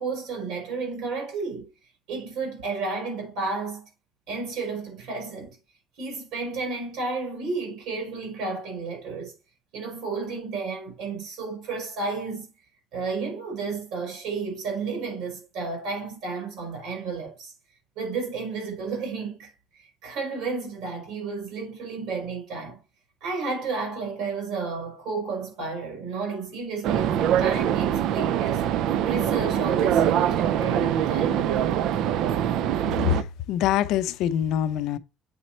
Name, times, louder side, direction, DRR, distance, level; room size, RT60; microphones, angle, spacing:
voice 1, 0.0-1.7 2.1-3.9 4.3-5.6 6.0-9.3 9.7-12.5 12.9-17.5 18.0-22.8 23.2-28.6 29.0-31.7, right 4 dB, 80° right, 3.8 m, -32 dB
sound 1, 26.8-33.2, right 10 dB, 65° right, 0.3 m, -23 dB
voice 2, 33.1-35.0, left 11 dB, 70° left, 0.5 m, -24 dB
7.7 x 4.2 x 4.2 m
cardioid pair, 175°, 0 cm